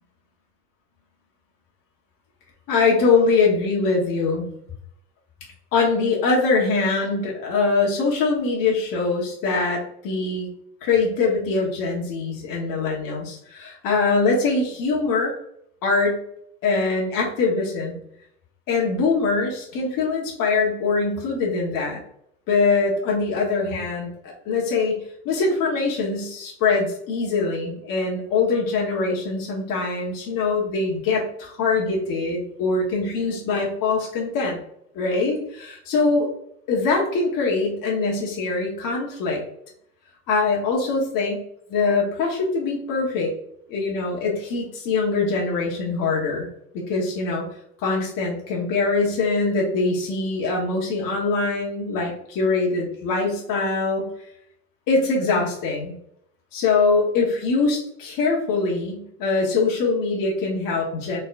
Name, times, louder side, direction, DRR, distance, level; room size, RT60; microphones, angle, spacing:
voice 1, 2.7-4.5 5.7-10.5 10.8-15.3 15.8-16.2 16.6-18.0 18.7-22.0 22.5-25.0 25.2-34.6 34.9-36.3 36.7-39.4 40.3-41.4 41.7-43.3 43.7-46.5 46.7-47.5 47.8-54.1 54.9-55.9 56.5-61.2, left 4 dB, 45° left, -2 dB, 1.4 m, -23 dB
4.0 x 3.5 x 2.6 m, 0.69 s
hypercardioid pair, 95°, 46 cm